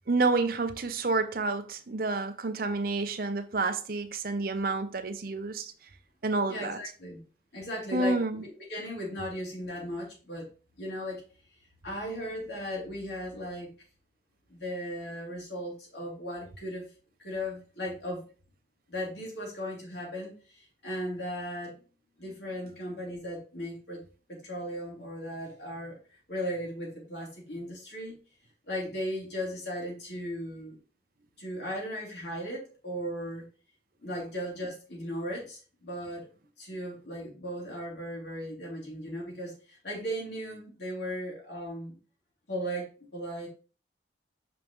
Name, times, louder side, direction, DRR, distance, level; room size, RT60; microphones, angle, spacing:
voice 1, 0.1-5.7 6.2-6.8 7.9-8.4, right 3 dB, 55° right, 0.6 m, -29 dB
voice 2, 6.5-7.2 7.5-10.5 10.8-11.2 11.8-13.7 14.5-16.9 17.2-18.2 18.9-21.7 22.2-24.0 24.3-26.0 26.3-28.2 28.7-30.8 31.4-33.4 34.0-36.3 36.6-42.0 42.5-43.5, equal, 65° left, 3.2 m, -37 dB
6.1 x 5.3 x 3.1 m
head